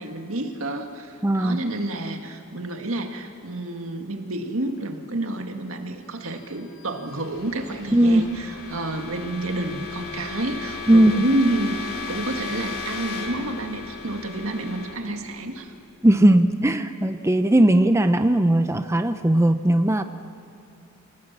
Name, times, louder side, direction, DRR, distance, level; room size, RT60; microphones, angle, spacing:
voice 1, 0.0-15.7, right 1 dB, 75° right, 5 dB, 1.9 m, -29 dB
voice 2, 1.2-1.6 7.9-8.2 10.9-11.2 16.0-20.0, right 1 dB, 15° right, 9 dB, 0.5 m, -18 dB
sound 1, 6.4-16.2, left 4 dB, 90° left, 2.6 m, -36 dB
27.5 x 18.0 x 7.4 m, 2.5 s
head